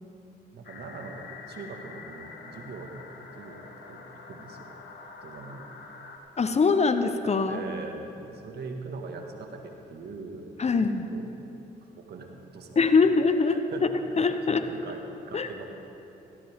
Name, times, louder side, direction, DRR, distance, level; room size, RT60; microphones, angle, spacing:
voice 1, 0.5-4.7 5.2-5.7 7.4-10.8 11.1-11.3 11.8-13.1 13.5-13.8 14.1-14.2 14.6-15.7, right 3 dB, 60° right, 3 dB, 1.9 m, -42 dB
sound 1, 0.6-6.2, left 4 dB, 65° left, 1.7 m, -46 dB
voice 2, 6.4-7.6 10.6-11.1 12.8-13.6 14.2-14.6 15.3-15.5, left 4 dB, 35° left, 9 dB, 0.9 m, -22 dB
17.5 x 15.0 x 3.7 m, 3.0 s
supercardioid pair, 60°, 19 cm